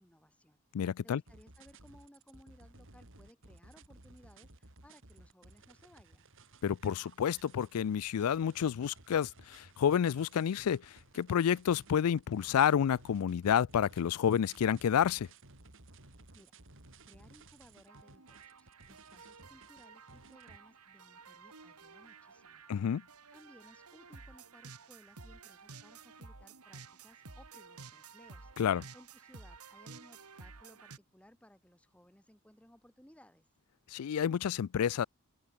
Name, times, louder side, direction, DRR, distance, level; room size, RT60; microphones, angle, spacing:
voice 1, 0.0-6.3 16.0-16.6 17.0-22.6 23.3-28.5 28.9-33.5, equal, 5° left, 4.7 m, -61 dB
voice 2, 0.7-1.2 6.6-15.3 22.7-23.0 28.6-28.8 33.9-35.1, left 8 dB, 75° left, 0.4 m, -29 dB
sound 1, 1.3-20.6, right 2 dB, 60° right, 4.6 m, -58 dB
sound 2, 17.9-31.0, right 4 dB, 85° right, 2.4 m, -53 dB
open air
head